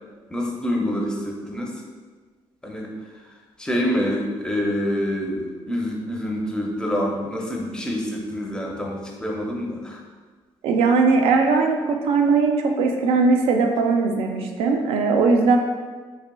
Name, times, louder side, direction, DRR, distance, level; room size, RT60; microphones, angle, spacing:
voice 1, 0.3-1.7 2.6-2.9 3.6-10.0, equal, 10° left, -1 dB, 0.5 m, -26 dB
voice 2, 10.6-15.6, right 4 dB, 90° right, 4 dB, 0.4 m, -19 dB
4.0 x 3.1 x 2.2 m, 1.4 s
cardioid pair, 145°, 10 cm